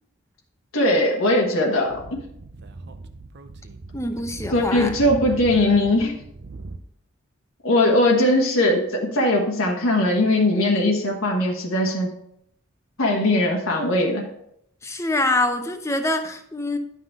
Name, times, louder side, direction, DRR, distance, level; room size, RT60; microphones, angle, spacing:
voice 1, 0.7-2.0 4.5-6.1 7.6-12.1 13.0-14.3, left 1 dB, 75° left, 0 dB, 1.4 m, -20 dB
Speech / Wind, 1.8-6.8, right 3 dB, 55° right, 0.6 m, -38 dB
voice 2, 3.9-5.0 14.8-16.8, left 2 dB, 15° left, 7 dB, 0.7 m, -25 dB
11.0 x 5.7 x 3.6 m, 0.73 s
head